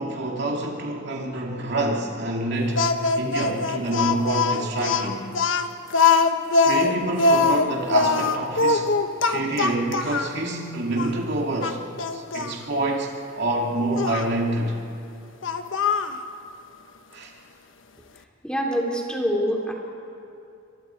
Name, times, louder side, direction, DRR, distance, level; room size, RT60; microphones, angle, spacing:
voice 1, 0.0-5.3 6.6-8.9 9.3-11.8 12.1-14.8 17.1-17.3, right 2 dB, 60° right, 0 dB, 2.6 m, -27 dB
Speech, 2.8-10.3 11.0-11.1 11.6-12.5 14.0-14.3 15.4-16.2, left 4 dB, 80° left, 1.1 m, -22 dB
voice 2, 18.4-19.7, equal, 5° left, -1 dB, 3.1 m, -25 dB
29.0 x 25.0 x 4.7 m, 2.7 s
head